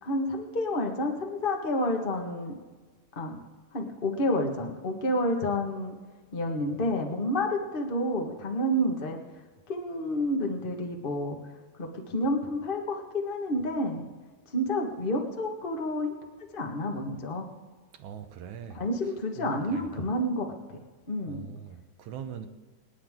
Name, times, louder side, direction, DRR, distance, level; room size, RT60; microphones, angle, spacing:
voice 1, 0.0-2.5 3.1-3.4 3.7-5.9 6.3-9.2 9.7-11.4 11.8-14.0 14.5-16.1 16.5-17.5 18.7-20.8 21.1-21.5, left 1 dB, 30° left, 1.1 m, -29 dB
voice 2, 17.9-20.1 21.3-22.5, right 8 dB, 80° right, 2.4 m, -42 dB
27.5 x 9.9 x 3.7 m
omnidirectional pair, 3.3 m